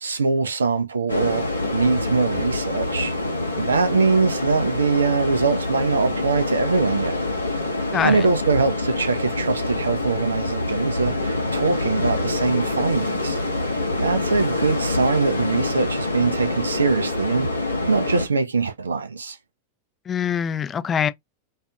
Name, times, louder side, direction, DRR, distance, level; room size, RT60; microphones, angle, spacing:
voice 1, 0.0-1.5 1.7-3.1 3.6-7.2 8.0-13.4 14.0-17.5 17.9-19.4, right 4 dB, 75° right, 0.4 m, -22 dB
sound 1, 1.1-18.3, left 2 dB, 80° left, 0.7 m, -26 dB
voice 2, 7.9-8.3 20.1-21.1, left 8 dB, 25° left, 0.4 m, -23 dB
2.5 x 2.4 x 2.2 m
figure-of-eight pair, 90°, 0 cm